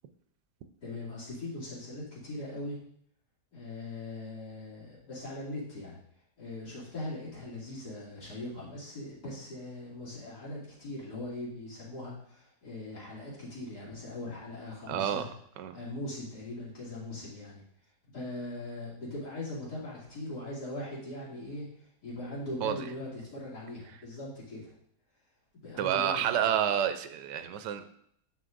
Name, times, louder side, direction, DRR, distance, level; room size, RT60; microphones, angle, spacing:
voice 1, 0.8-2.8 3.5-6.0 6.4-15.3 15.7-17.6 18.1-24.7 25.6-26.6, left 1 dB, 70° left, -7 dB, 3.3 m, -40 dB
voice 2, 14.9-15.3 15.6-15.8 22.6-22.8 25.8-27.9, right 9 dB, 85° right, 10 dB, 1.2 m, -29 dB
9.1 x 6.4 x 2.5 m, 0.69 s
omnidirectional pair, 1.8 m